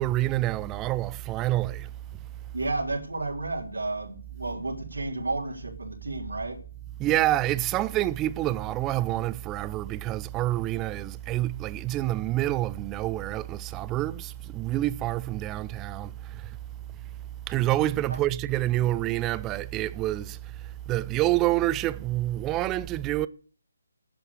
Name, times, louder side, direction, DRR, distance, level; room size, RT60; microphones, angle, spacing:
voice 1, 0.0-1.9 7.0-16.6 17.5-23.3, right 15 dB, 15° right, 0.5 m, -27 dB
voice 2, 2.5-6.6 18.1-18.2, right 2 dB, 90° right, 3.7 m, -32 dB
11.5 x 7.7 x 8.3 m
figure-of-eight pair, 155°, 0 cm